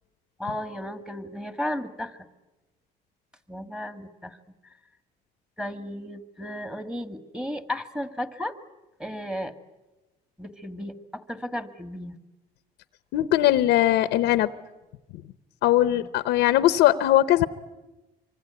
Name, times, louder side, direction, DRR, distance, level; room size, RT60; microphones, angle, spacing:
voice 1, 0.4-2.2 3.5-4.4 5.6-8.5 9.0-9.5 10.4-12.2 15.9-16.1, left 1 dB, 5° right, 9 dB, 1.8 m, -34 dB
voice 2, 13.1-14.5 15.6-17.5, left 14 dB, 90° left, 13 dB, 0.8 m, -20 dB
25.0 x 24.5 x 9.5 m, 1.1 s
cardioid pair, 110°, 17 cm